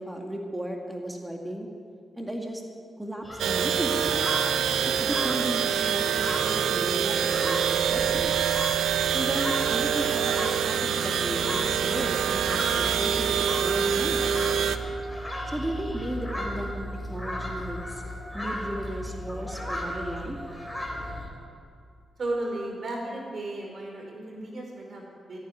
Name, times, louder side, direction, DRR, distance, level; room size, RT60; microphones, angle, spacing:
voice 1, 0.0-1.7 2.1-2.6 3.0-4.2 5.0-8.4 9.1-14.3 15.4-18.0 18.3-20.4, equal, 10° right, 1 dB, 2.1 m, -35 dB
sound 1, 3.2-21.3, equal, 10° left, 3.8 m, -36 dB
sound 2, 3.4-14.8, right 8 dB, 90° right, 0.6 m, -25 dB
voice 2, 22.2-25.4, right 2 dB, 60° right, 0 dB, 4.9 m, -34 dB
14.0 x 10.0 x 9.7 m, 2.4 s
cardioid pair, 60°, 0 cm